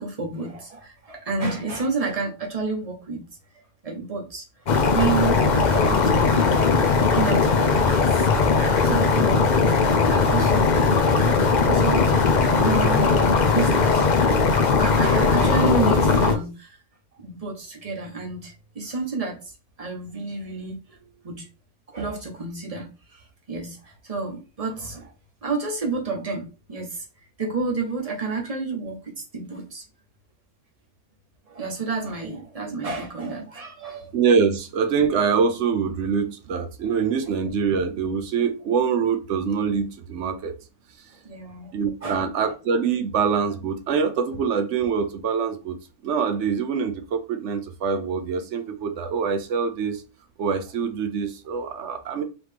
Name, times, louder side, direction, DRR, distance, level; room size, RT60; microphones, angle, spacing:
voice 1, 0.0-3.2 3.5-4.6 4.9-6.6 7.0-11.0 11.3-14.1 14.6-16.8 17.1-19.5 19.8-21.5 21.9-25.1 25.4-27.0 27.4-29.8 31.5-34.1 36.9-37.0 41.2-41.7 42.0-42.5, right 4 dB, 30° right, 0.9 m, -30 dB
sound 1, 4.7-16.4, left 4 dB, 55° left, 0.5 m, -19 dB
voice 2, 34.1-40.5 41.7-45.8 46.0-50.0 50.4-52.2, right 6 dB, 60° right, 0.9 m, -24 dB
4.0 x 3.0 x 3.3 m
omnidirectional pair, 1.5 m